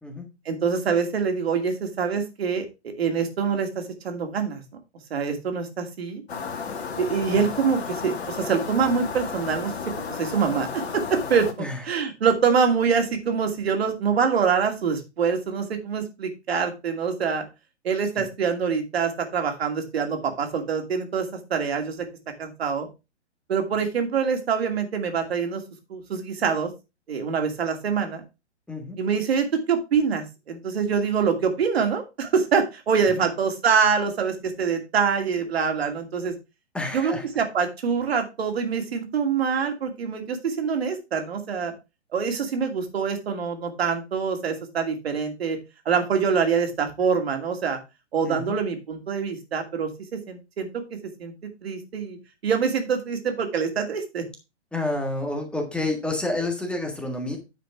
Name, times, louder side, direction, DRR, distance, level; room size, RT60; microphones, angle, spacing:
voice 1, 0.4-4.6 5.1-6.2 7.0-11.5 11.8-17.4 17.8-22.0 22.4-22.9 23.5-25.6 25.9-26.7 27.1-28.2 29.0-36.3 36.9-41.7 42.1-45.6 45.8-47.8 48.1-49.9 50.3-50.7 51.2-51.3 51.6-52.2 52.4-54.2, right 6 dB, 60° right, 5 dB, 2.6 m, -25 dB
sound 1, 6.3-11.5, left 5 dB, 65° left, 1.9 m, -33 dB
voice 2, 28.7-29.0 33.1-33.3 36.7-37.3 48.2-48.6 54.7-57.4, left 2 dB, 5° left, 3 dB, 1.6 m, -29 dB
10.0 x 5.0 x 4.6 m, 0.27 s
figure-of-eight pair, 130°, 35 cm